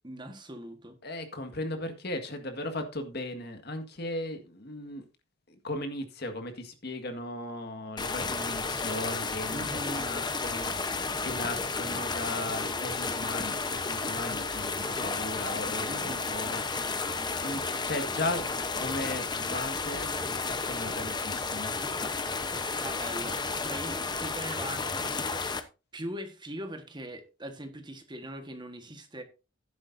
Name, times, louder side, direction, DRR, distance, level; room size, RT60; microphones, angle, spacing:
voice 1, 0.0-1.0 9.5-10.1 14.8-15.1 15.9-16.3 22.3-25.4 25.9-29.2, right 1 dB, 20° right, 1.4 m, -41 dB
voice 2, 1.0-5.0 5.5-9.7 9.9-17.1 17.3-21.8, left 1 dB, 50° left, 1.8 m, -37 dB
sound 1, 8.0-25.6, left 4 dB, 20° left, 0.9 m, -32 dB
12.5 x 10.5 x 2.7 m
head